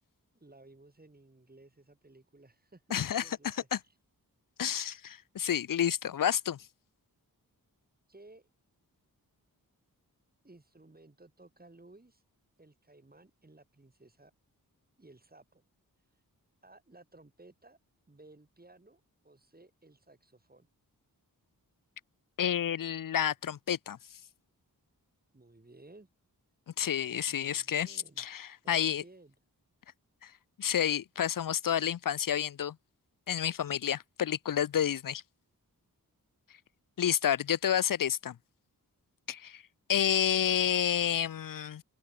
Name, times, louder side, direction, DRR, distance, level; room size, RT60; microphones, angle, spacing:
voice 1, 0.3-4.0 8.1-8.5 10.4-12.2 12.6-14.3 15.0-15.6 16.1-16.2 16.6-17.8 18.1-20.7 25.3-26.1 27.3-28.2 28.6-29.3, right 2 dB, 25° right, 5.1 m, -57 dB
voice 2, 2.9-3.2 3.7-3.8 4.6-6.6 22.4-24.0 26.8-29.0 30.2-30.3 30.6-32.8 33.3-35.2 37.0-38.4 39.3-39.6 39.9-41.8, left 9 dB, 60° left, 0.6 m, -30 dB
open air
wide cardioid pair, 85°, 36 cm